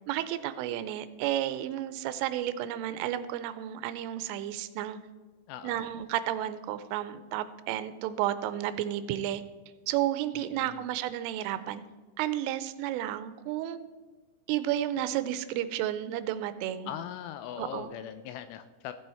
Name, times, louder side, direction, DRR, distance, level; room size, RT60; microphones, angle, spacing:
voice 1, 0.1-5.0 5.6-9.4 9.9-11.8 12.2-13.8 14.5-16.9 17.6-17.9, right 12 dB, 85° right, 13 dB, 3.1 m, -32 dB
voice 2, 5.5-5.9 10.3-10.9 16.9-18.9, left 10 dB, 85° left, 11 dB, 2.9 m, -40 dB
15.0 x 8.2 x 4.4 m, 1.3 s
omnidirectional pair, 5.8 m